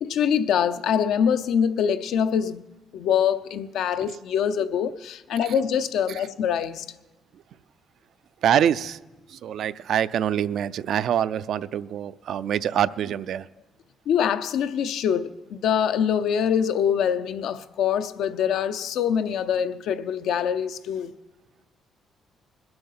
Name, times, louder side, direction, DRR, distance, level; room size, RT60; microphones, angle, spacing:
voice 1, 0.0-2.6 2.9-6.9 14.1-21.1, left 8 dB, 75° left, 0.6 m, -24 dB
voice 2, 8.4-9.0 9.3-13.5, right 9 dB, 65° right, 0.4 m, -25 dB
21.0 x 7.8 x 5.6 m
cardioid pair, 115°, 0 cm